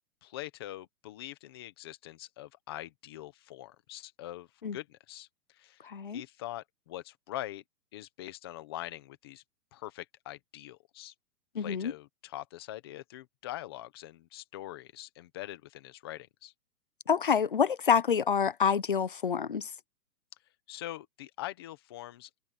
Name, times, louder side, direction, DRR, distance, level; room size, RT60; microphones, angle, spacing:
voice 1, 0.2-5.3 5.5-5.8 6.1-7.6 7.9-9.4 9.7-11.1 11.6-16.5 20.7-22.4, left 15 dB, 15° left, 0.8 m, -43 dB
voice 2, 5.8-6.2 11.6-11.9 17.1-19.7, left 7 dB, 35° left, 0.4 m, -27 dB
hypercardioid pair, 170°, 48 cm